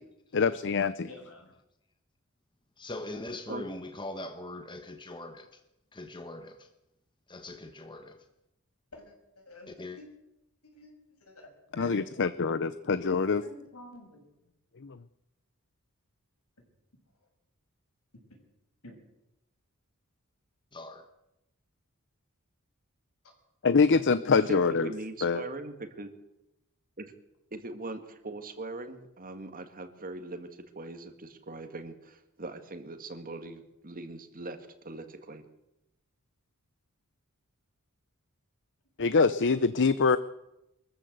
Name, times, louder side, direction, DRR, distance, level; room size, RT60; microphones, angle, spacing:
voice 1, 0.3-1.1 11.8-13.4 14.8-15.0 23.6-24.9 25.2-25.4 39.0-40.2, left 4 dB, 55° left, 14 dB, 0.7 m, -24 dB
voice 2, 1.0-1.5 8.9-10.1 10.6-12.3 13.1-14.2 18.8-19.0 24.3-24.7 25.4-25.5 39.1-39.6, left 1 dB, 75° left, 3 dB, 6.5 m, -50 dB
voice 3, 2.8-5.6 5.9-6.7 7.3-8.2 9.7-10.0 20.7-21.1, left 2 dB, 20° left, 7 dB, 1.3 m, -41 dB
voice 4, 24.3-26.1 27.0-27.1 27.5-34.6 34.8-35.4, right 2 dB, 40° right, 7 dB, 2.1 m, -41 dB
23.5 x 14.0 x 8.1 m, 0.90 s
head